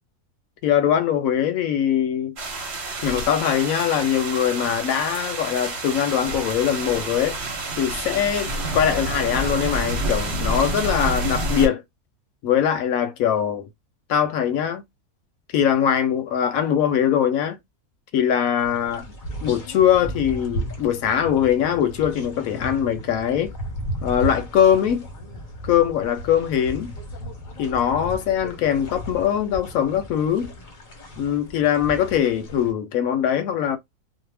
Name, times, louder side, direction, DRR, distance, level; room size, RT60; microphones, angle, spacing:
voice 1, 0.6-2.4 3.0-7.4 7.8-11.8 12.4-13.7 14.1-14.8 15.5-17.6 18.1-19.0 19.4-23.5 24.0-25.0 25.6-26.9 27.6-30.5 31.2-33.8, left 9 dB, 70° left, 0.9 m, -22 dB
sound 1, 2.4-11.7, right 2 dB, 50° right, 1.1 m, -28 dB
sound 2, 18.6-32.7, equal, 40° left, 0.7 m, -35 dB
2.6 x 2.1 x 3.2 m
omnidirectional pair, 1.6 m